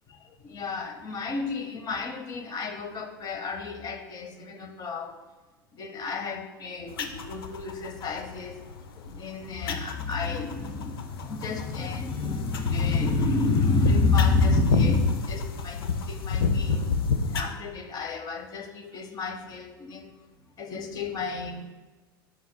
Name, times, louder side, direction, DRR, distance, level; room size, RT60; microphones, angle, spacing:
voice 1, 0.1-5.2 5.7-16.9 17.3-20.2 20.6-21.6, left 3 dB, 35° left, 7 dB, 0.9 m, -30 dB
sound 1, 6.9-17.4, left 4 dB, 80° left, 0.6 m, -29 dB
11.0 x 4.3 x 2.2 m, 1.2 s
hypercardioid pair, 90°, 12 cm